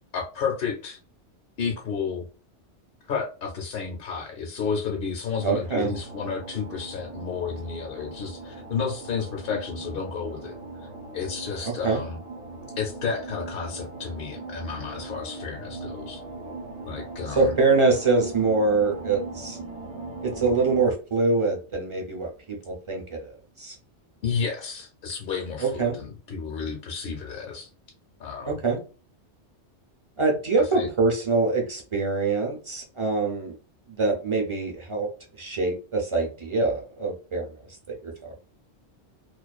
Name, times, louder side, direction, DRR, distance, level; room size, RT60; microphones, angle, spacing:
voice 1, 0.1-1.0 1.6-2.2 3.0-10.6 11.1-12.2 12.8-16.2 16.8-17.5 24.2-27.7 28.2-28.6 30.7-30.9, left 6 dB, 60° left, 0 dB, 0.7 m, -31 dB
voice 2, 5.4-5.9 11.8-12.0 17.4-19.6 20.2-22.3 22.6-23.8 25.6-26.0 28.5-28.8 30.2-33.6 33.9-35.1 35.4-37.5 37.9-38.4, right 3 dB, 40° right, 0 dB, 0.4 m, -24 dB
sound 1, 5.6-20.8, right 2 dB, 85° right, 1.0 m, -39 dB
2.4 x 2.2 x 2.3 m, 0.35 s
omnidirectional pair, 1.2 m